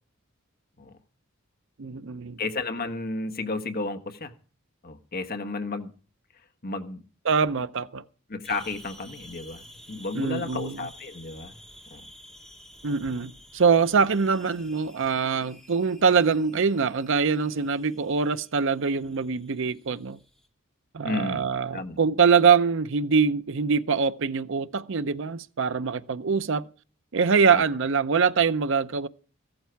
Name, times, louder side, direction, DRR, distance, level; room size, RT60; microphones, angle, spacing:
voice 1, 1.8-2.4 7.2-8.0 10.1-10.8 12.8-20.2 20.9-26.7 27.1-29.1, right 5 dB, 65° right, 0.6 m, -24 dB
voice 2, 2.4-4.3 4.8-5.9 6.6-7.0 8.3-11.6 11.9-12.1 21.0-21.4 21.7-22.0 27.5-27.6, left 3 dB, 45° left, 1.3 m, -32 dB
sound 1, 8.4-20.5, equal, ahead, 1.9 m, -51 dB
15.0 x 13.0 x 4.6 m
head